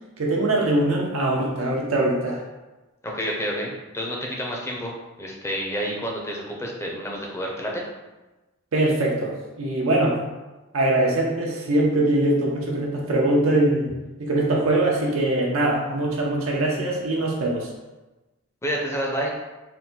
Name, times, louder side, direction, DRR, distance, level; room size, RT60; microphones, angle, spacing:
voice 1, 0.2-2.4 8.7-10.2 10.7-13.9 14.2-17.7, right 1 dB, 85° right, -2 dB, 0.7 m, -22 dB
voice 2, 3.0-7.8 18.6-19.3, equal, 15° left, -2 dB, 0.6 m, -29 dB
3.8 x 2.2 x 4.3 m, 1.1 s
head